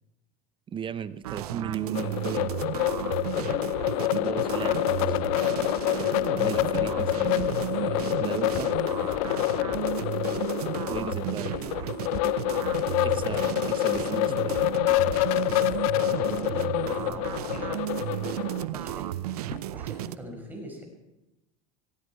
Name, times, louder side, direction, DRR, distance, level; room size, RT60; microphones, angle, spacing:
sound 1, 0.7-20.0, left 12 dB, 45° left, 0.7 m, -48 dB
voice 1, 0.7-2.5 4.1-5.5 5.9-8.8 10.9-11.9 13.0-14.8, right 7 dB, 25° right, 15 dB, 0.7 m, -37 dB
sound 2, 1.2-20.1, right 13 dB, 90° right, 0.7 m, -33 dB
sound 3, 1.9-18.6, left 18 dB, 70° left, 0.5 m, -27 dB
voice 2, 15.9-19.1 19.7-20.8, equal, 10° right, 1 dB, 5.7 m, -42 dB
18.0 x 16.0 x 4.7 m, 0.96 s
supercardioid pair, 110°, 19 cm